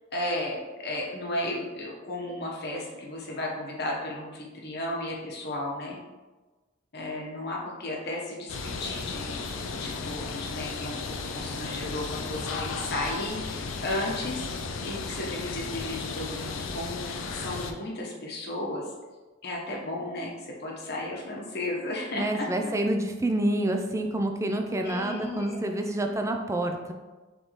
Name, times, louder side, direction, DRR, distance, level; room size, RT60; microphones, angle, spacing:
voice 1, 0.1-6.0 6.9-9.5 9.7-11.0 11.3-14.4 14.8-18.8 19.4-22.5 24.8-25.7 26.1-26.2, left 1 dB, 55° left, -2 dB, 1.0 m, -34 dB
sound 1, 8.5-17.7, left 4 dB, 80° left, 0.4 m, -35 dB
voice 2, 22.1-26.9, right 1 dB, 15° right, 4 dB, 0.3 m, -28 dB
4.0 x 3.4 x 3.0 m, 1.2 s
head